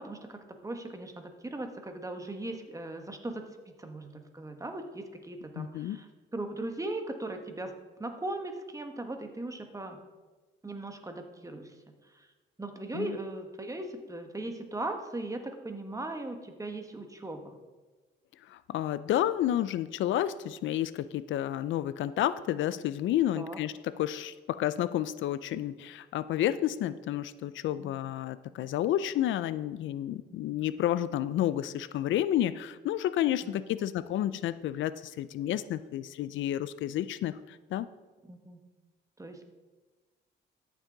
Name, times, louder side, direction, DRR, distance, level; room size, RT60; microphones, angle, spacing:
voice 1, 0.0-7.7 8.0-10.0 10.6-12.3 12.6-17.6 23.3-23.6 27.8-28.0 30.3-30.7 33.4-33.9 38.3-38.6 39.2-39.4, right 2 dB, 15° right, 6 dB, 1.3 m, -39 dB
voice 2, 5.5-6.0 12.9-13.2 18.5-37.9, left 12 dB, 75° left, 15 dB, 0.5 m, -30 dB
13.5 x 7.5 x 3.9 m, 1.3 s
cardioid pair, 90°, 20 cm